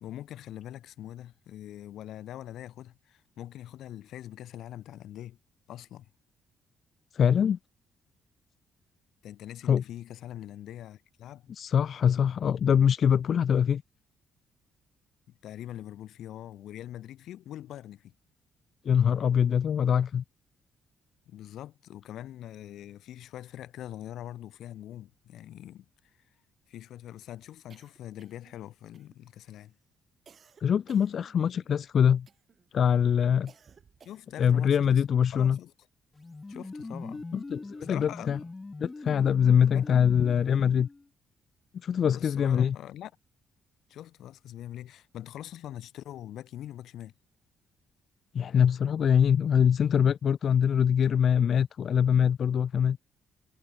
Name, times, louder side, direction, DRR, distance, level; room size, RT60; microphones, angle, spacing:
voice 1, 0.0-5.4 5.7-6.1 9.2-11.5 15.3-18.1 21.3-26.2 26.7-29.8 34.0-35.0 35.3-35.7 36.5-37.2 37.8-38.5 39.7-39.9 42.0-43.1 43.9-47.1, left 12 dB, 80° left, 1.5 m, -43 dB
voice 2, 7.1-7.6 9.7-9.8 11.5-13.8 18.8-20.2 30.6-32.3 32.7-33.5 34.4-35.6 37.3-38.4 38.8-40.9 41.8-42.8 48.3-53.0, left 8 dB, 55° left, 0.5 m, -23 dB
sound 1, 27.7-28.6 28.9-29.5 30.3-31.7 32.3-32.7 33.5-34.5, right 6 dB, 45° right, 4.7 m, -59 dB
sound 2, 36.1-41.1, left 3 dB, 20° left, 0.7 m, -42 dB
cardioid pair, 90°, 0 cm